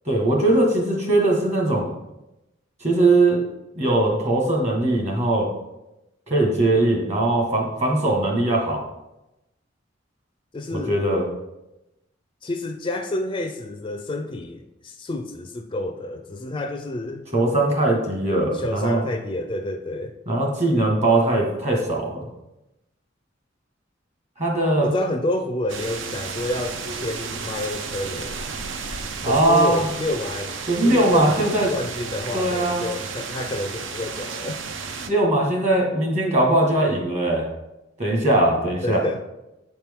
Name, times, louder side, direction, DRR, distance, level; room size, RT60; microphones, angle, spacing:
voice 1, 0.0-1.9 2.8-3.4 3.7-5.5 6.3-8.8 10.7-11.2 17.3-19.0 20.3-22.3 24.4-24.9 29.2-29.8 30.7-31.7 32.3-32.8 35.0-37.4 38.0-39.0, right 2 dB, 35° right, 0 dB, 1.5 m, -20 dB
voice 2, 10.5-11.0 12.4-17.3 18.5-20.1 24.8-28.6 29.2-30.5 30.8-34.6 38.8-39.2, left 1 dB, 25° left, 5 dB, 0.4 m, -29 dB
sound 1, 25.7-35.1, right 5 dB, 70° right, 0.6 m, -33 dB
8.0 x 4.4 x 3.6 m, 0.95 s
head